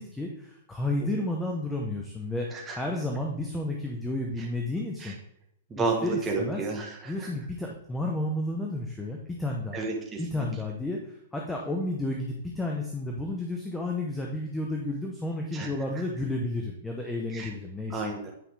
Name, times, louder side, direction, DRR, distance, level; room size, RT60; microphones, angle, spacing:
voice 1, 0.0-5.2 5.7-6.6 7.1-9.8 10.2-11.0 11.3-18.0, left 2 dB, 5° left, 0 dB, 0.7 m, -32 dB
voice 2, 5.7-7.3 9.7-10.5 15.5-15.7 17.3-17.5 17.9-18.3, right 3 dB, 10° right, -1 dB, 1.2 m, -32 dB
8.6 x 5.6 x 3.4 m, 0.76 s
hypercardioid pair, 170°, 0 cm